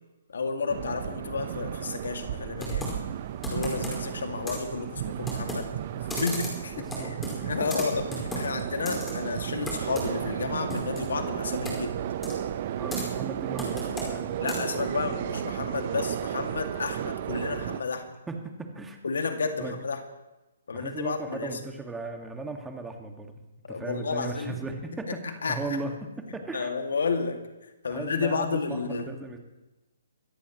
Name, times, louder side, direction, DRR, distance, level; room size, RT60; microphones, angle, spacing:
voice 1, 0.3-2.9 3.5-7.1 7.4-8.0 8.4-12.0 14.4-18.1 19.0-20.0 20.7-21.6 23.7-24.6 25.1-25.8 26.3-27.4 27.8-29.1, left 4 dB, 70° left, 5 dB, 2.2 m, -31 dB
sound 1, 0.7-17.8, right 11 dB, 45° right, 0.7 m, -34 dB
Computer keyboard, 2.6-14.9, left 1 dB, 10° left, 4.9 m, -38 dB
voice 2, 6.8-7.5 12.8-14.2 18.3-19.0 19.6-19.7 20.7-23.3 23.7-25.9 26.3-26.7 27.9-29.4, right 3 dB, 10° right, 4 dB, 1.9 m, -37 dB
24.5 x 14.0 x 3.1 m, 1.0 s
hypercardioid pair, 140°, 0 cm